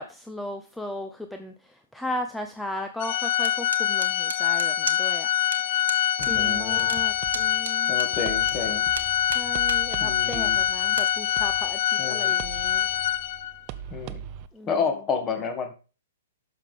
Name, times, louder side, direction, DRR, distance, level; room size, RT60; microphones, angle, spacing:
voice 1, 0.0-5.3 5.7-5.8 6.2-8.0 9.3-12.9 14.5-14.7, left 1 dB, 5° left, 0.8 m, -36 dB
Organ, 3.0-13.6, left 11 dB, 45° left, 0.6 m, -25 dB
sound 1, 3.4-5.2 5.5-5.6 5.9-6.3 6.6-8.5 8.9-9.8 10.3-10.4 10.9-11.1, right 4 dB, 80° right, 1.2 m, -34 dB
voice 2, 6.2-6.9 7.9-8.8 10.0-10.6 12.0-12.3 13.9-14.2 14.7-15.7, left 5 dB, 25° left, 2.1 m, -30 dB
sound 2, 6.2-14.5, right 10 dB, 35° right, 0.6 m, -41 dB
11.5 x 6.6 x 3.6 m
figure-of-eight pair, 115°, 0 cm